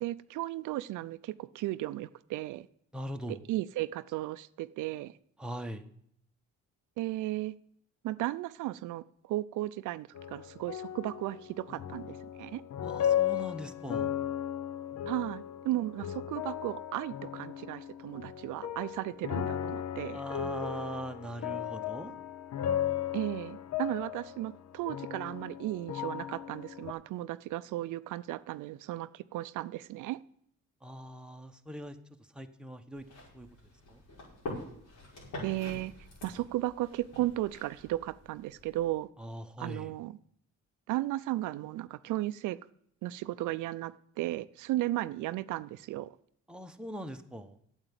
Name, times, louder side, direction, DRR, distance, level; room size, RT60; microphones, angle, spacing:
voice 1, 0.0-2.7 3.3-5.1 7.0-7.5 8.0-12.6 15.1-20.2 23.1-30.2 35.4-35.9 36.2-39.1 39.6-40.1 40.9-42.6 43.0-46.1, right 16 dB, 80° right, 15 dB, 0.5 m, -35 dB
voice 2, 2.9-3.4 5.4-5.9 12.8-14.1 20.1-22.1 30.8-32.0 32.3-33.0 33.3-33.5 33.9-34.0 39.2-39.9 46.5-47.6, equal, 5° right, 5 dB, 1.0 m, -41 dB
sound 1, 10.1-26.9, left 10 dB, 60° left, 0.7 m, -36 dB
sound 2, 32.9-38.9, left 1 dB, 75° left, 5.7 m, -46 dB
8.9 x 8.1 x 7.5 m, 0.70 s
cardioid pair, 90°, 30 cm